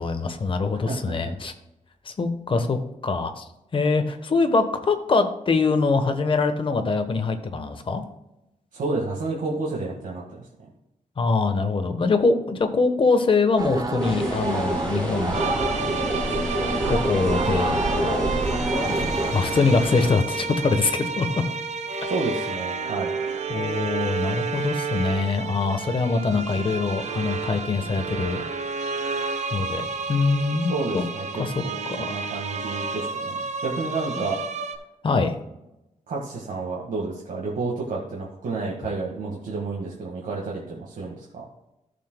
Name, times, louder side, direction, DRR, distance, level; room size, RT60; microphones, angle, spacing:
voice 1, 0.0-1.5 2.0-3.4 3.7-8.0 11.2-15.5 16.9-18.3 18.7-19.0 19.3-21.3 22.0-22.1 23.5-28.4 29.0-31.0 31.4-31.6 31.9-32.2 34.2-34.3 35.0-35.3, left 4 dB, 40° left, 7 dB, 1.1 m, -24 dB
voice 2, 8.7-10.2 22.1-23.1 30.7-34.4 36.1-41.5, right 3 dB, 85° right, -3 dB, 1.7 m, -30 dB
sound 1, 13.6-19.3, right 2 dB, 25° right, 0.8 m, -27 dB
sound 2, 14.0-20.1, equal, 10° left, 3.3 m, -32 dB
sound 3, 15.3-34.8, right 4 dB, 60° right, 0.8 m, -31 dB
14.5 x 6.9 x 2.3 m, 0.91 s
wide cardioid pair, 155°, 13 cm